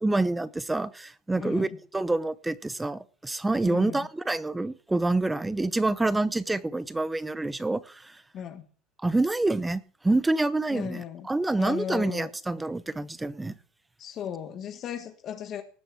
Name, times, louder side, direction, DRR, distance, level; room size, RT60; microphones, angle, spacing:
voice 1, 0.0-1.7 1.9-8.1 9.0-13.5, right 2 dB, 10° right, 0.9 m, -27 dB
voice 2, 1.4-1.8 3.6-4.1 8.3-8.6 10.7-11.3 11.6-12.3 14.0-15.6, left 8 dB, 45° left, 1.5 m, -36 dB
18.5 x 6.9 x 7.4 m
supercardioid pair, 110°, 0 cm